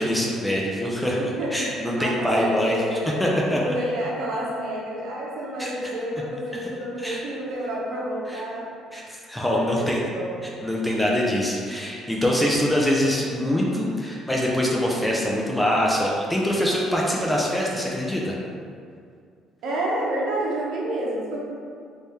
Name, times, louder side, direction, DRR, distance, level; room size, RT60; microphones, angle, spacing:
voice 1, 0.0-2.8 3.2-3.6 5.6-5.7 6.6-6.7 7.0-7.2 8.3-8.4 8.9-10.0 10.6-18.4, equal, 5° left, -3 dB, 0.5 m, -24 dB
voice 2, 1.2-1.7 2.0-3.2 3.5-8.7 9.5-10.4 19.6-21.4, right 1 dB, 70° right, -5 dB, 0.9 m, -29 dB
3.3 x 2.7 x 3.5 m, 2.3 s
cardioid pair, 135°, 0 cm